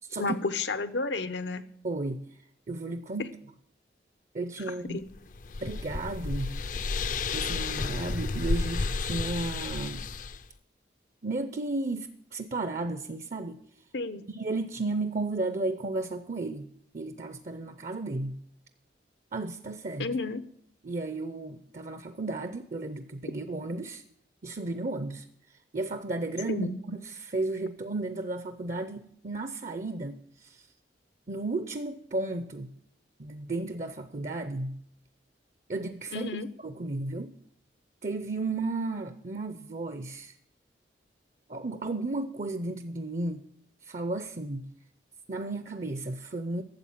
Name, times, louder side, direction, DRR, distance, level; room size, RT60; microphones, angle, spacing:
voice 1, 0.1-1.6 4.9-5.0 13.9-14.3 20.0-20.4 26.5-26.8 36.1-36.5, left 3 dB, 85° left, 11 dB, 0.9 m, -31 dB
voice 2, 1.8-2.3 2.7-3.4 4.3-5.0 5.6-6.6 7.3-10.0 11.2-13.6 14.3-16.7 16.9-18.4 19.3-20.1 20.8-24.0 24.4-30.7 31.3-32.7 33.2-34.8 35.7-36.3 36.6-37.3 38.0-40.3 41.5-43.5 43.8-44.7 45.3-46.6, right 2 dB, 45° right, 11 dB, 0.6 m, -34 dB
sound 1, 5.1-10.4, left 4 dB, 45° left, 0.5 m, -32 dB
13.0 x 7.7 x 7.4 m, 0.69 s
head